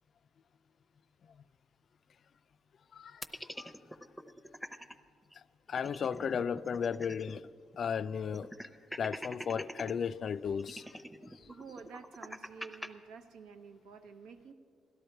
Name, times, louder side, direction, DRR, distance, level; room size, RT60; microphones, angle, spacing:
voice 1, 2.9-3.2 3.6-3.7 5.7-7.5 7.8-8.5 9.0-10.9, left 7 dB, 55° left, 0.3 m, -34 dB
sound 1, 3.2-4.9 5.3-5.4 5.7-7.5 7.7-7.8 8.3-9.9 10.6-12.9, equal, ahead, 0.7 m, -44 dB
voice 2, 11.4-14.5, right 5 dB, 85° right, 0.9 m, -50 dB
17.0 x 12.5 x 4.5 m
cardioid pair, 90°, 0 cm